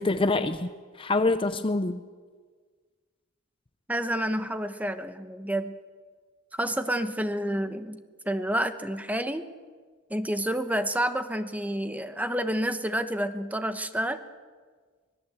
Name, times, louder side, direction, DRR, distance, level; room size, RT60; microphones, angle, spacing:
voice 1, 0.0-2.0, left 2 dB, 25° left, 10 dB, 0.7 m, -26 dB
voice 2, 3.9-5.8 6.6-9.4 10.1-14.2, right 1 dB, 5° right, 9 dB, 1.1 m, -29 dB
25.0 x 20.5 x 8.1 m, 1.5 s
head